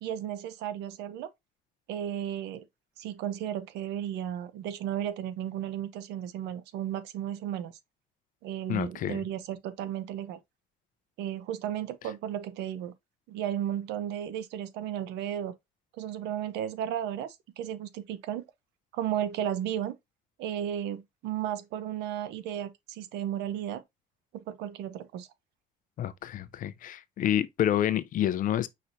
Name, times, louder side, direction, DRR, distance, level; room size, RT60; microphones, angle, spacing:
voice 1, 0.0-1.3 1.9-2.6 3.0-7.7 8.4-10.4 11.2-12.9 13.3-15.5 16.0-18.4 18.9-20.0 20.4-23.8 24.3-25.3, right 10 dB, 85° right, 0.6 m, -34 dB
voice 2, 8.7-9.2 26.0-28.7, left 11 dB, 55° left, 0.5 m, -28 dB
5.7 x 3.2 x 2.5 m
cardioid pair, 110°, 17 cm